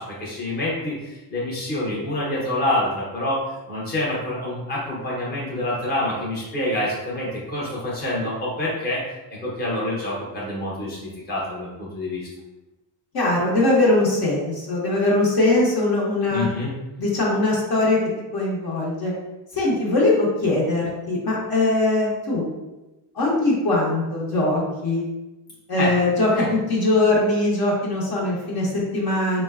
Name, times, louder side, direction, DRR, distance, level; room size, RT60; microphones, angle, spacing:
voice 1, 0.0-3.4 3.7-9.0 9.3-12.3 16.3-16.7 25.8-25.9 26.4-26.5, left 1 dB, 20° left, -6 dB, 0.9 m, -27 dB
voice 2, 13.1-16.5 17.0-18.0 18.3-19.1 19.5-22.5 23.1-25.0 25.7-26.3 26.7-29.4, left 2 dB, 50° left, -5 dB, 1.1 m, -21 dB
3.6 x 2.2 x 2.4 m, 1.0 s
cardioid pair, 115°, 46 cm